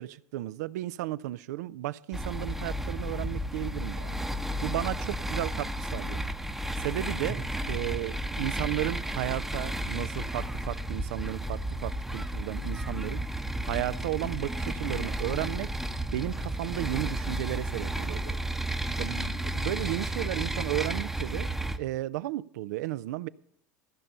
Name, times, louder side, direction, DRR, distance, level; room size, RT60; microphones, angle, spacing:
voice 1, 0.0-4.2 4.6-6.2 6.8-13.2 13.7-15.7 16.1-18.4 19.0-21.5 21.8-23.3, right 16 dB, 80° right, 0.4 m, -34 dB
sound 1, 2.1-21.8, right 1 dB, 5° right, 0.7 m, -33 dB
14.5 x 5.4 x 8.8 m
hypercardioid pair, 100°, 9 cm